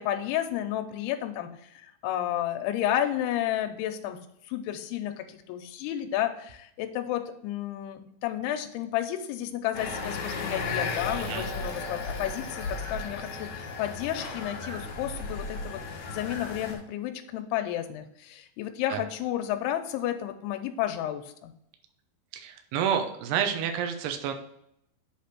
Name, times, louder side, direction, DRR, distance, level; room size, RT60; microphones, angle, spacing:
voice 1, 0.0-4.2 4.5-15.8 16.1-21.5, left 12 dB, 85° left, 6 dB, 2.7 m, -32 dB
sound 1, 9.7-16.7, left 4 dB, 60° left, 2.0 m, -35 dB
voice 2, 22.3-24.3, right 8 dB, 80° right, 5 dB, 2.8 m, -29 dB
8.2 x 3.4 x 5.9 m, 0.73 s
omnidirectional pair, 4.7 m